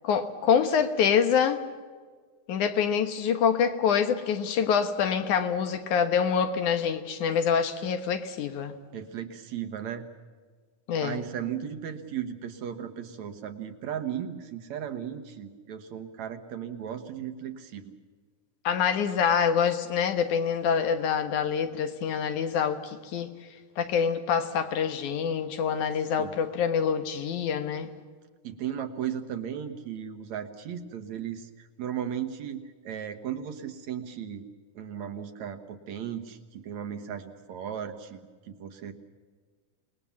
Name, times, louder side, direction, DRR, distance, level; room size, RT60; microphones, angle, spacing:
voice 1, 0.0-1.6 2.5-8.7 10.9-11.2 18.6-23.3 23.8-27.9, left 7 dB, 70° left, 8 dB, 2.6 m, -26 dB
voice 2, 8.9-10.0 11.0-17.9 26.2-26.3 28.4-34.4 34.8-38.2 38.5-38.9, right 9 dB, 65° right, 7 dB, 2.4 m, -36 dB
28.0 x 20.0 x 7.1 m, 1.5 s
omnidirectional pair, 3.8 m